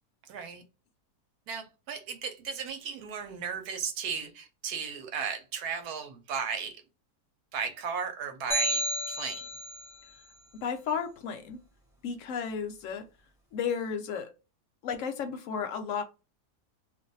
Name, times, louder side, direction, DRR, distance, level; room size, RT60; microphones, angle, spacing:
voice 1, 0.3-0.6 1.5-6.8 7.5-9.5, right 6 dB, 75° right, 1.1 m, -35 dB
sound 1, 8.5-9.9, right 1 dB, 5° right, 0.5 m, -31 dB
voice 2, 10.6-11.6 12.0-13.0 13.5-14.3 14.8-16.0, left 6 dB, 65° left, 0.8 m, -33 dB
2.5 x 2.3 x 4.0 m
omnidirectional pair, 1.7 m